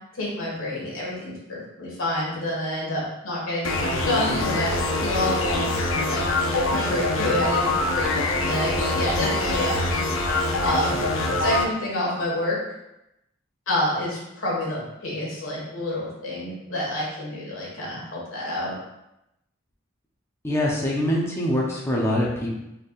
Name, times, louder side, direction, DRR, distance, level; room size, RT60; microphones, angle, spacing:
voice 1, 0.1-6.3 6.5-9.8 10.6-11.0 11.4-12.6 13.7-18.7, left 1 dB, 90° left, -5 dB, 1.4 m, -28 dB
sound 1, 3.6-11.6, left 2 dB, 70° left, 0.5 m, -24 dB
voice 2, 20.4-22.6, left 1 dB, 15° left, -4 dB, 0.6 m, -24 dB
4.3 x 3.4 x 2.4 m, 0.88 s
head